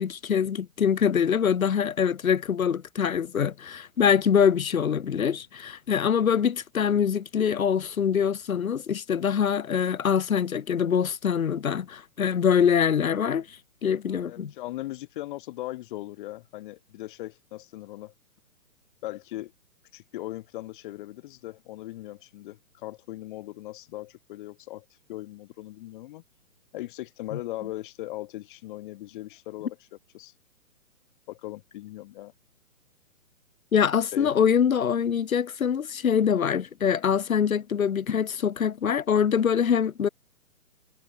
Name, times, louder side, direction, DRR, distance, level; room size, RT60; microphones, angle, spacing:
voice 1, 0.0-13.5 13.8-14.5 33.7-40.1, left 7 dB, 65° left, 2.8 m, -24 dB
voice 2, 14.1-18.1 19.0-19.5 19.9-26.2 26.7-29.8 30.1-30.3 31.3-32.3 34.1-34.3, left 16 dB, 35° left, 5.9 m, -39 dB
hypercardioid pair, 150°, 44 cm